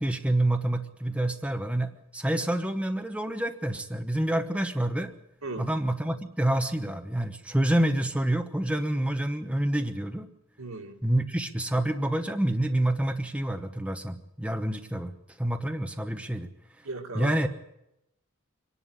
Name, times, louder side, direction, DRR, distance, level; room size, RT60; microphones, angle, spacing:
voice 1, 0.0-5.1 5.6-10.3 11.0-15.1 15.4-16.5 17.1-17.5, right 1 dB, 5° right, 6 dB, 1.0 m, -27 dB
voice 2, 10.6-10.9 16.8-17.5, right 3 dB, 85° right, 4 dB, 2.3 m, -36 dB
24.0 x 11.5 x 9.8 m, 0.85 s
head